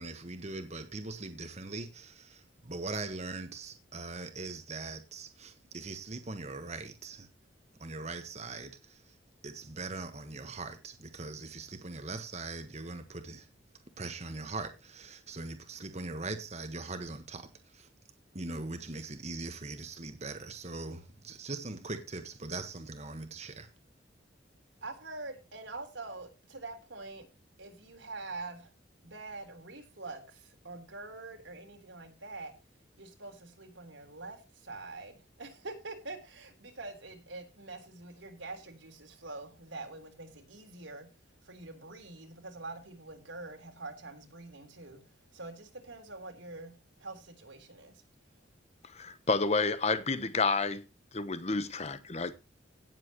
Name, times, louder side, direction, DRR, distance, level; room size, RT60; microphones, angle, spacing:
voice 1, 0.0-7.3 7.8-9.2 9.4-13.5 14.0-17.9 18.3-23.7, right 3 dB, 35° right, 1.4 m, -41 dB
voice 2, 24.8-27.3 27.6-28.7 29.0-32.5 33.0-41.1 41.4-45.0 45.3-46.7 47.0-48.0, right 3 dB, 90° right, 3.7 m, -45 dB
voice 3, 48.9-50.8 51.1-52.3, left 3 dB, 35° left, 1.0 m, -30 dB
17.0 x 7.6 x 3.0 m
head